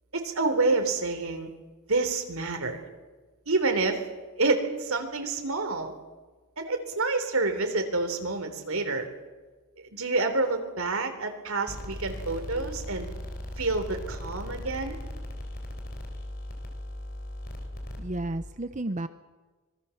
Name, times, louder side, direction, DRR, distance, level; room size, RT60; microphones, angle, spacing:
voice 1, 0.1-1.5 1.9-2.8 3.4-4.0 4.4-5.9 6.6-9.1 9.8-13.1 13.6-15.0, right 3 dB, 75° right, 5 dB, 3.5 m, -28 dB
sound 1, 11.7-18.5, left 1 dB, 45° left, 3.8 m, -38 dB
voice 2, 18.0-19.1, right 1 dB, 35° right, 11 dB, 0.7 m, -32 dB
25.5 x 21.0 x 7.2 m, 1.3 s
head